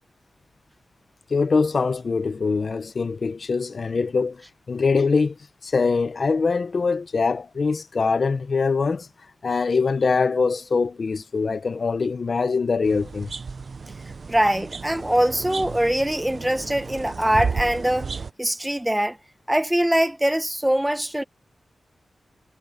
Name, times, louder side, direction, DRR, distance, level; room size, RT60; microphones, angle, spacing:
voice 1, 1.3-4.4 4.7-5.3 5.6-9.1 9.4-13.3, left 4 dB, 45° left, 0.6 m, -23 dB
sound 1, 12.8-18.3, right 5 dB, 45° right, 0.6 m, -33 dB
voice 2, 14.3-18.1 18.4-19.2 19.5-21.2, right 1 dB, 5° right, 1.0 m, -22 dB
wide cardioid pair, 160°, 0 cm